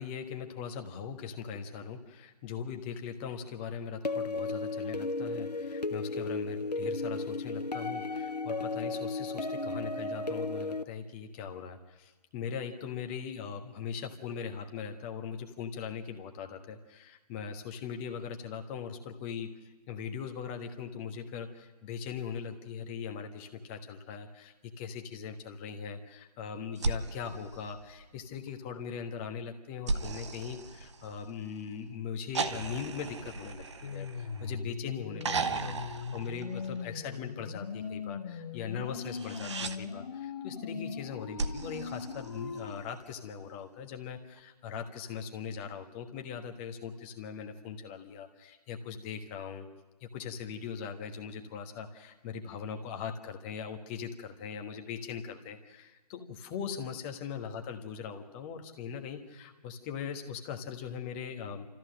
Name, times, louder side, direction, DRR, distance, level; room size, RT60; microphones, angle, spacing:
voice 1, 0.0-49.7 50.0-61.7, left 7 dB, 20° left, 5 dB, 1.3 m, -40 dB
sound 1, 4.0-10.8, left 3 dB, 85° left, 0.9 m, -34 dB
sound 2, 26.8-28.3 29.9-31.5 32.3-34.6 35.2-37.0 39.0-39.8 41.4-42.9 44.4-44.5, right 4 dB, 45° right, 1.1 m, -36 dB
sound 3, 33.8-42.8, left 6 dB, 40° left, 1.1 m, -40 dB
29.5 x 14.0 x 6.4 m, 1.2 s
figure-of-eight pair, 140°, 20 cm